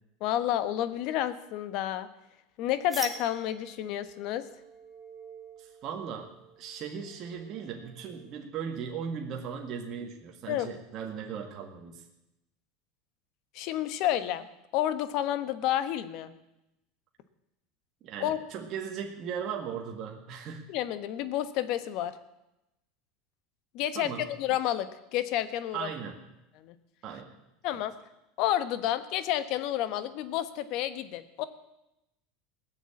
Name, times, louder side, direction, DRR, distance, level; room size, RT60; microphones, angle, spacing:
voice 1, 0.2-2.1 2.6-4.5 10.5-10.7 13.5-14.5 14.7-16.3 18.2-18.4 20.7-22.1 23.7-25.9 26.6-26.7 27.6-27.9 28.4-31.4, left 12 dB, 55° left, 13 dB, 1.1 m, -30 dB
sound 1, 2.9-8.5, right 3 dB, 10° right, 1.9 m, -45 dB
voice 2, 5.6-6.3 6.6-12.0 18.0-20.6 24.0-24.3 25.7-26.2 27.0-27.4, right 7 dB, 40° right, 2 dB, 1.9 m, -37 dB
19.0 x 7.1 x 8.6 m, 0.92 s
supercardioid pair, 135°, 0 cm